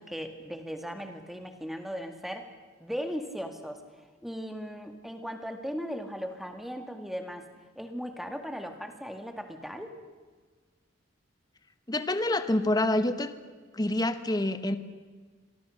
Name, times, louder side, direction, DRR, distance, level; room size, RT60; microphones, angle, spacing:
voice 1, 0.0-2.5 2.8-3.8 4.2-7.5 7.8-10.0, equal, ahead, 6 dB, 2.0 m, -37 dB
voice 2, 11.9-13.3 13.7-14.8, left 1 dB, 20° left, 11 dB, 1.1 m, -27 dB
27.0 x 24.0 x 6.5 m, 1.5 s
head